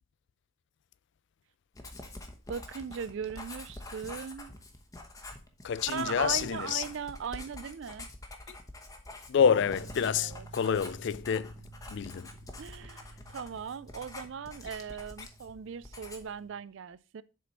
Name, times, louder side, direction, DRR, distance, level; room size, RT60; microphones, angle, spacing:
Writing, 1.8-15.6 15.8-16.4, left 2 dB, 15° left, 1.0 m, -46 dB
voice 1, 2.5-4.5 5.9-8.1 10.1-10.5 12.6-17.2, right 7 dB, 60° right, 0.4 m, -39 dB
voice 2, 5.6-6.8 9.3-11.5 11.9-12.3, left 7 dB, 55° left, 0.3 m, -28 dB
sound 1, 9.4-16.6, right 4 dB, 75° right, 1.3 m, -51 dB
7.3 x 4.3 x 5.3 m
head